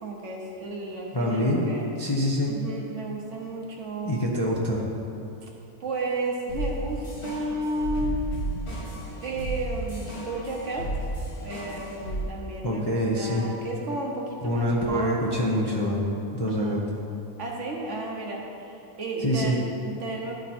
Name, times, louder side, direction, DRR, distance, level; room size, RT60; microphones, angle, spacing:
voice 1, 0.0-1.9 2.5-4.3 5.4-5.5 5.8-8.2 9.2-10.9 11.4-15.2 16.5-16.8 17.4-20.3, right 2 dB, 55° right, -1 dB, 1.2 m, -33 dB
voice 2, 1.1-1.7 2.0-2.5 4.1-4.9 12.6-13.4 14.4-16.1 16.3-16.8 19.2-19.6, left 1 dB, 25° left, -5 dB, 0.6 m, -25 dB
sound 1, 6.5-12.2, right 1 dB, 45° left, 2.5 m, -33 dB
11.5 x 4.5 x 4.2 m, 2.8 s
omnidirectional pair, 1.6 m